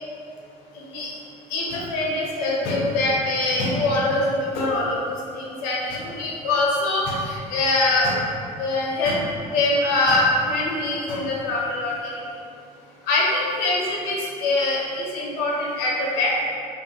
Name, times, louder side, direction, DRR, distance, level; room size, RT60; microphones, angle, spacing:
voice 1, 1.5-5.0 5.3-8.1 8.6-9.2 9.5-11.9 13.1-16.4, left 2 dB, 65° left, -4 dB, 0.6 m, -23 dB
2.4 x 2.4 x 2.7 m, 2.4 s
figure-of-eight pair, 55°, 20 cm